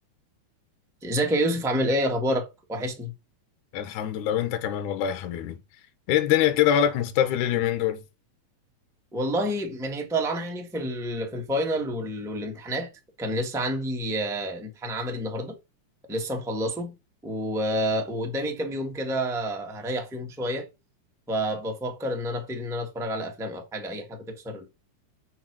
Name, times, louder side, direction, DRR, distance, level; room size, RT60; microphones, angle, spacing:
voice 1, 1.0-3.1 9.1-12.9 13.2-15.6 16.1-16.9 17.2-20.7 21.3-24.7, equal, 5° right, 0.4 m, -29 dB
voice 2, 3.7-5.6 6.1-8.0, left 10 dB, 70° left, 2.4 m, -24 dB
6.4 x 4.7 x 6.1 m
omnidirectional pair, 3.8 m